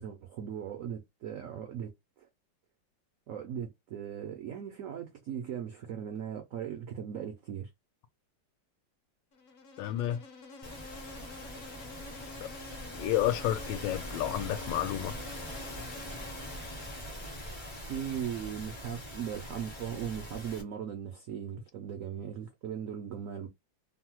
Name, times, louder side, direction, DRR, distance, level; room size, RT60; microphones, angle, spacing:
voice 1, 0.0-1.9 2.2-2.3 3.3-7.7 17.9-23.5, right 8 dB, 80° right, 0.7 m, -38 dB
Insect, 9.3-17.5, left 3 dB, 60° left, 0.9 m, -49 dB
voice 2, 9.8-10.2 12.4-12.5 13.0-15.1, left 12 dB, 75° left, 1.2 m, -31 dB
sound 1, 10.6-20.6, equal, 35° left, 0.4 m, -42 dB
3.1 x 2.0 x 2.9 m
omnidirectional pair, 2.0 m